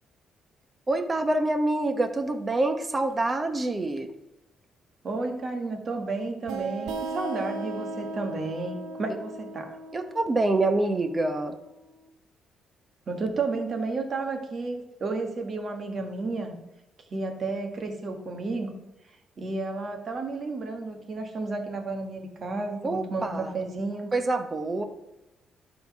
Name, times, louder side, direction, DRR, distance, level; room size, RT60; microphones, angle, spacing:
voice 1, 0.9-4.1 9.9-11.6 22.8-23.7 24.1-24.8, right 2 dB, 25° right, 8 dB, 0.9 m, -26 dB
voice 2, 5.0-9.8 13.1-16.5 17.1-18.7 19.4-24.1, right 3 dB, 45° right, 4 dB, 1.5 m, -32 dB
sound 1, 6.5-11.8, right 3 dB, 85° right, 0.7 m, -37 dB
11.5 x 4.0 x 5.9 m, 0.93 s
cardioid pair, 90°, 0 cm